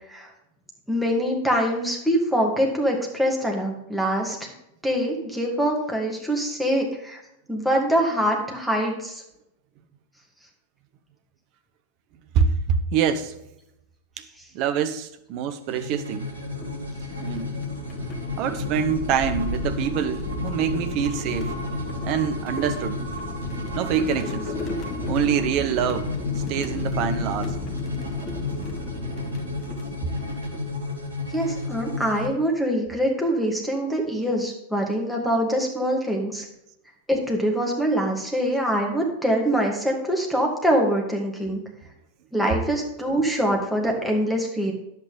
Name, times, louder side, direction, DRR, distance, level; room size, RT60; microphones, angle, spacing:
voice 1, 0.9-4.5 4.8-7.2 7.5-9.2 31.3-36.4 37.1-41.6 42.3-44.7, equal, ahead, -1 dB, 2.4 m, -24 dB
voice 2, 12.3-13.4 14.2-14.3 14.5-16.3 17.2-17.5 18.4-21.6 22.0-23.0 23.7-24.5 25.1-26.1 26.5-27.6, right 7 dB, 40° right, 9 dB, 1.0 m, -25 dB
sound 1, 15.6-32.3, left 3 dB, 75° right, 1.7 m, -32 dB
sound 2, 16.2-31.2, left 2 dB, 30° left, 1.6 m, -34 dB
10.5 x 8.2 x 3.8 m, 0.83 s
figure-of-eight pair, 90°, 0 cm